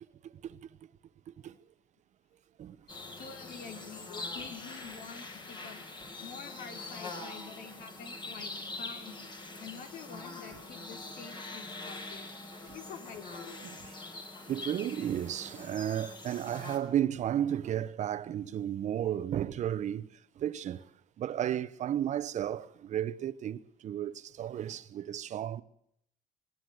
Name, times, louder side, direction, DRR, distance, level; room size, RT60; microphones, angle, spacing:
voice 1, 0.2-0.6 1.3-1.6 2.6-2.8 12.7-12.8 13.6-13.9 14.5-20.9 21.2-25.6, right 10 dB, 60° right, 1.0 m, -33 dB
sound 1, 2.9-16.8, left 2 dB, 35° left, 4.9 m, -44 dB
voice 2, 3.2-5.8 6.2-9.2 9.6-12.3 12.7-13.6, left 6 dB, 85° left, 4.0 m, -47 dB
20.0 x 19.5 x 8.0 m
cardioid pair, 125°, 14 cm